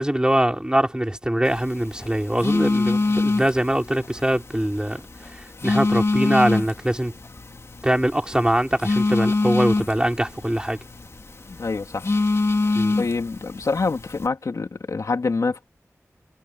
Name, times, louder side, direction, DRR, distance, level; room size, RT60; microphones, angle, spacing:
voice 1, 0.0-5.0 5.3-7.1 7.8-10.8 12.7-13.0, right 1 dB, 15° right, 4.8 m, -23 dB
Telephone, 1.4-14.3, left 3 dB, 55° left, 2.7 m, -25 dB
voice 2, 11.4-12.1 13.0-15.6, left 4 dB, 80° left, 3.3 m, -26 dB
cardioid pair, 45°, 5 cm